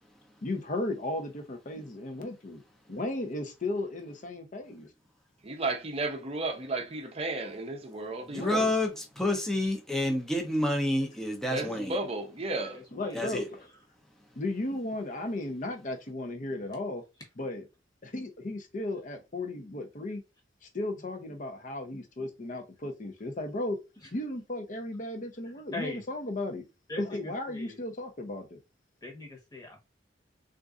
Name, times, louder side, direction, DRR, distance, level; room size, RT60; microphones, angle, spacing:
voice 1, 0.4-2.6 2.9-4.9 8.3-8.7 12.9-13.6 14.4-17.0 17.4-17.7 18.0-20.2 20.7-23.8 24.1-26.6 27.0-28.6, left 2 dB, 45° left, 0.7 m, -35 dB
voice 2, 5.4-8.6 11.5-12.8, right 2 dB, 35° right, 0.6 m, -33 dB
voice 3, 8.2-11.9 13.1-13.5, left 1 dB, 5° left, 0.7 m, -29 dB
voice 4, 12.7-13.3 25.7-26.0 26.9-27.8 29.0-29.8, left 2 dB, 20° left, 1.1 m, -41 dB
3.7 x 2.5 x 2.4 m
head